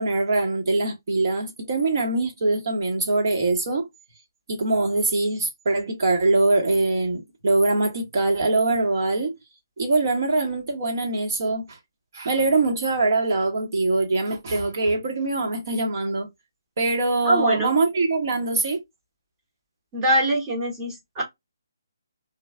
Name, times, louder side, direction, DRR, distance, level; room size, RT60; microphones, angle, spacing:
voice 1, 0.0-3.9 4.5-9.3 9.8-11.8 12.1-16.3 16.8-18.8, right 2 dB, 55° right, 1.1 m, -23 dB
voice 2, 17.2-17.7 19.9-21.2, right 1 dB, 20° right, 1.1 m, -23 dB
3.1 x 2.3 x 2.3 m
figure-of-eight pair, 150°, 2 cm